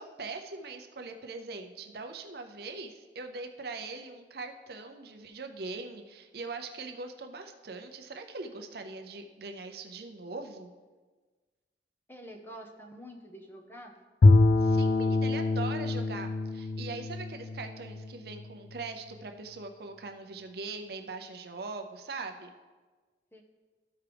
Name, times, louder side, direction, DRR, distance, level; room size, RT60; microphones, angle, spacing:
voice 1, 0.0-10.7 14.6-22.5, right 3 dB, 60° right, 6 dB, 0.6 m, -41 dB
voice 2, 12.1-14.0 23.3-23.4, equal, 10° left, 2 dB, 0.7 m, -47 dB
Bowed string instrument, 14.2-18.5, left 2 dB, 55° left, 0.3 m, -25 dB
13.0 x 4.7 x 3.4 m, 1.4 s
head